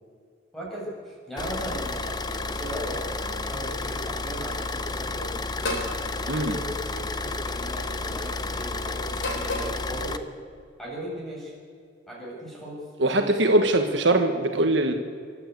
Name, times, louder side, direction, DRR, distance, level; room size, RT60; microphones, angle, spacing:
voice 1, 0.5-5.8 6.2-10.3 10.8-11.5 12.1-13.4, equal, ahead, -4 dB, 7.0 m, -37 dB
Car / Idling, 1.4-10.2, left 3 dB, 20° left, 0.8 m, -31 dB
sound 1, 5.6-6.0 7.2-7.5 9.1-9.8, left 1 dB, 80° left, 3.7 m, -31 dB
voice 2, 13.0-14.9, right 2 dB, 65° right, 5 dB, 1.5 m, -22 dB
28.0 x 12.5 x 8.3 m, 2.2 s
head